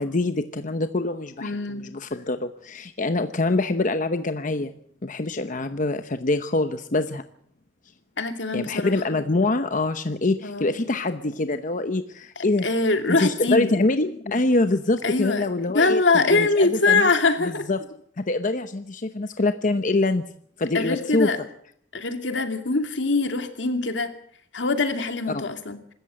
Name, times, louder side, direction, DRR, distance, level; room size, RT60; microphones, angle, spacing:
voice 1, 0.0-4.7 5.0-7.2 8.5-12.7 13.1-17.1 17.4-17.9 18.2-20.2 20.6-21.3 25.3-25.4, left 2 dB, 45° left, 9 dB, 0.9 m, -25 dB
voice 2, 1.4-1.8 8.2-8.9 10.4-10.7 12.4-13.8 15.0-15.4 15.7-17.7 20.7-21.4 21.9-24.1 24.5-25.8, left 3 dB, 85° left, 6 dB, 2.5 m, -23 dB
25.0 x 14.0 x 7.6 m, 0.66 s
head